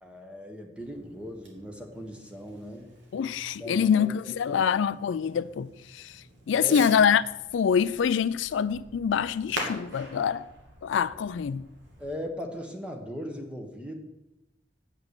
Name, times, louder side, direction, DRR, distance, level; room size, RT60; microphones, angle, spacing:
voice 1, 0.0-2.9 3.6-4.7 6.5-6.9 12.0-13.9, equal, 5° right, 1.2 m, -39 dB
Fireworks, 0.8-12.1, right 1 dB, 65° right, 2.5 m, -45 dB
voice 2, 3.1-7.2 7.5-10.5 10.8-11.7, left 7 dB, 75° left, 0.3 m, -25 dB
8.2 x 5.9 x 8.1 m
head